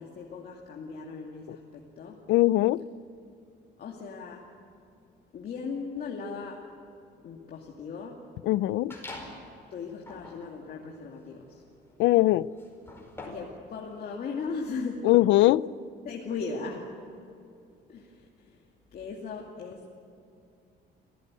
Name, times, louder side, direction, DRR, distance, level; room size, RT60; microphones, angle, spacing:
voice 1, 0.0-2.2 3.8-4.5 5.3-6.7 7.2-8.2 9.7-11.6 13.2-15.1 15.5-15.6 16.0-16.9 17.9-18.6 18.9-19.9, left 4 dB, 55° left, 2.5 m, -38 dB
voice 2, 2.3-2.8 8.4-8.9 12.0-12.5 15.0-15.6, left 17 dB, 90° left, 0.5 m, -21 dB
sound 1, 8.9-9.5 10.0-13.6, left 2 dB, 15° left, 4.9 m, -45 dB
26.5 x 16.0 x 9.7 m
cardioid pair, 140°, 18 cm